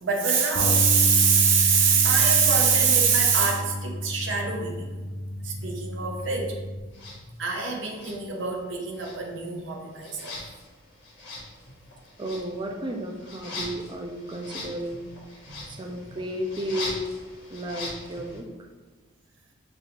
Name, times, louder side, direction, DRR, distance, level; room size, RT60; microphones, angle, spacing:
voice 1, 0.0-4.9 5.3-6.6 7.1-10.4 15.5-15.7 16.1-16.2, right 6 dB, 70° right, 1 dB, 0.6 m, -24 dB
Bass guitar, 0.5-6.8, left 1 dB, 50° left, 0.5 m, -30 dB
sound 1, 6.9-7.2 7.9-8.7 8.9-18.4, left 2 dB, 70° left, 0.9 m, -41 dB
voice 2, 12.2-15.1 15.6-17.1 17.5-18.5, equal, 25° right, 2 dB, 0.3 m, -33 dB
5.2 x 2.4 x 2.9 m, 1.2 s
head